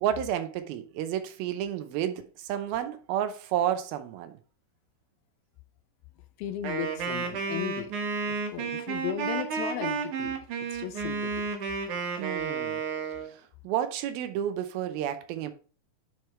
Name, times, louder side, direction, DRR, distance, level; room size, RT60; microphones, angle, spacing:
voice 1, 0.0-4.3 12.2-12.8 13.6-15.5, right 10 dB, 85° right, 2.7 m, -31 dB
voice 2, 6.4-7.9 8.3-10.4 10.7-11.5, left 11 dB, 90° left, 2.7 m, -36 dB
Wind instrument woodwind instrument, 6.6-13.3, right 5 dB, 60° right, 2.6 m, -32 dB
10.0 x 4.6 x 3.3 m
omnidirectional pair, 4.2 m